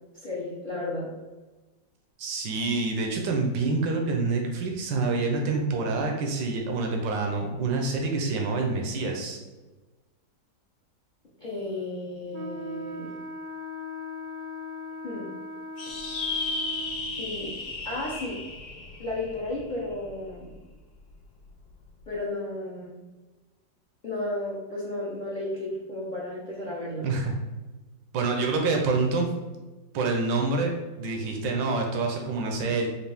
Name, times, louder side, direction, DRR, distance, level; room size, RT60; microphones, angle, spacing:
voice 1, 0.1-1.1 11.4-13.1 15.0-15.3 17.2-17.5 17.8-18.4 19.0-20.5 22.1-23.0 24.0-27.1, left 2 dB, 45° left, -6 dB, 0.6 m, -33 dB
voice 2, 2.2-9.4 27.0-27.3 28.1-29.3 29.9-32.9, right 3 dB, 85° right, 2 dB, 1.4 m, -27 dB
Wind instrument woodwind instrument, 12.3-17.2, left 1 dB, 65° right, 1.0 m, -38 dB
sound 1, 15.8-20.5, left 3 dB, 85° left, 1.3 m, -34 dB
4.4 x 2.6 x 3.4 m, 1.2 s
omnidirectional pair, 2.0 m